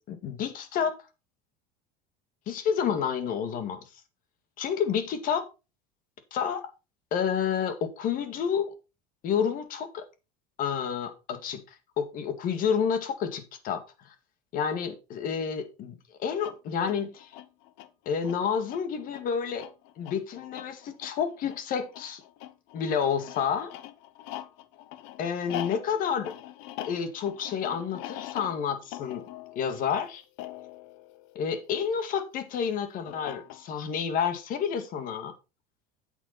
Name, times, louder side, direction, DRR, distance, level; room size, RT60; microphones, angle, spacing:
voice 1, 0.1-0.9 2.5-3.8 4.6-5.5 6.3-6.7 7.1-8.7 9.2-10.0 10.6-13.8 14.5-17.3 18.1-19.7 20.0-22.2 22.7-23.8 25.2-26.3 26.8-29.2 29.6-30.2 31.4-35.3, left 7 dB, 45° left, 2.0 m, -29 dB
sound 1, 16.3-32.0 33.1-33.9, left 14 dB, 65° left, 1.0 m, -43 dB
8.5 x 8.3 x 4.2 m
cardioid pair, 140°, 20 cm